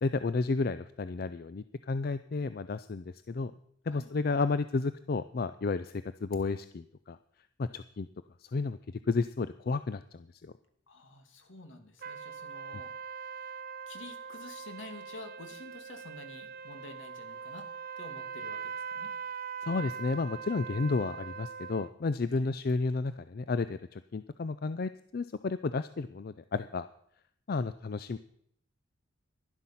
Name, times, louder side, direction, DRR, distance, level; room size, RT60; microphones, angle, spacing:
voice 1, 0.0-3.5 3.9-7.2 7.6-8.1 8.4-8.8 9.1-10.5 19.6-26.9 27.5-28.2, left 3 dB, 50° left, 13 dB, 0.4 m, -32 dB
voice 2, 10.9-12.9 13.2-13.6 13.9-17.7 18.0-19.1 22.3-22.5, left 2 dB, 75° left, 6 dB, 2.2 m, -49 dB
sound 1, 12.0-21.9, right 6 dB, 45° right, 0.5 m, -42 dB
11.5 x 11.5 x 5.7 m, 0.68 s
head